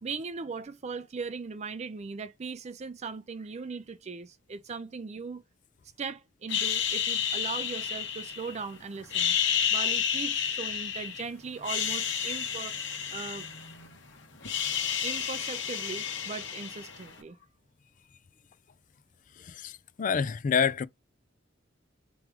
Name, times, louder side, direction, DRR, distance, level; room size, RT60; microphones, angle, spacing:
voice 1, 0.0-5.4 6.0-9.4 9.7-12.8 13.1-13.5 15.0-17.4, right 5 dB, 35° right, 0.4 m, -39 dB
sound 1, 6.5-8.6 9.0-11.2 11.6-14.0 14.2-17.1, left 8 dB, 65° left, 1.2 m, -31 dB
voice 2, 20.0-20.9, left 6 dB, 45° left, 0.4 m, -26 dB
4.6 x 3.1 x 3.6 m
head